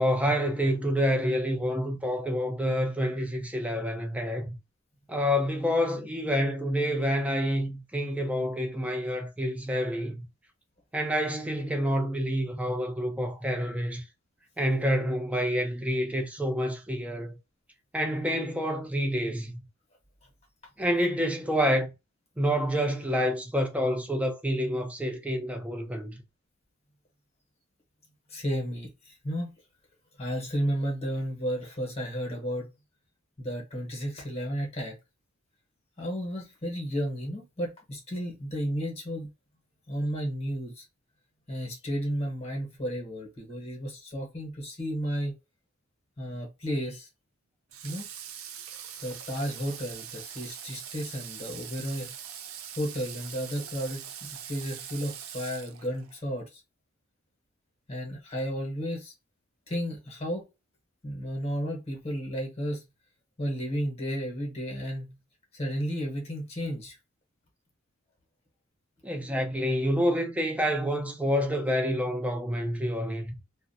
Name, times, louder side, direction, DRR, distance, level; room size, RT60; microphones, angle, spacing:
voice 1, 0.0-4.5 5.1-10.2 10.9-14.0 14.6-17.4 17.9-19.6 20.8-21.9 22.4-26.2 69.0-73.4, equal, 5° right, 0.5 m, -28 dB
voice 2, 28.3-29.5 30.2-32.7 33.4-35.0 36.0-39.3 39.9-40.8 41.5-45.3 46.2-47.1 47.8-48.1 49.0-52.1 52.8-56.6 57.9-59.1 59.7-60.4 61.0-62.8 63.4-65.1 65.5-67.0, equal, 30° left, 0.9 m, -33 dB
Water / Water tap faucet, 47.7-56.2, right 9 dB, 80° right, 0.5 m, -42 dB
2.5 x 2.1 x 2.5 m
head